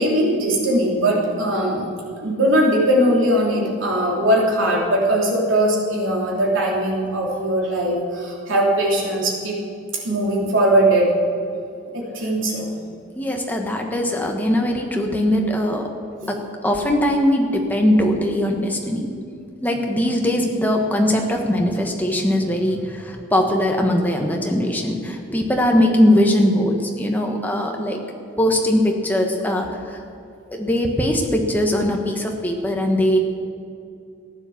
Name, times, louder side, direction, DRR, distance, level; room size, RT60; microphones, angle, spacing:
voice 1, 0.0-1.9 2.2-9.6 10.0-11.1 11.9-12.7 19.7-20.0, right 1 dB, 75° right, -2 dB, 3.0 m, -20 dB
voice 2, 13.2-15.9 16.2-19.1 19.6-28.0 28.4-30.0 30.5-33.2, left 1 dB, 10° left, 1 dB, 1.3 m, -20 dB
14.5 x 10.0 x 7.1 m, 2.5 s
head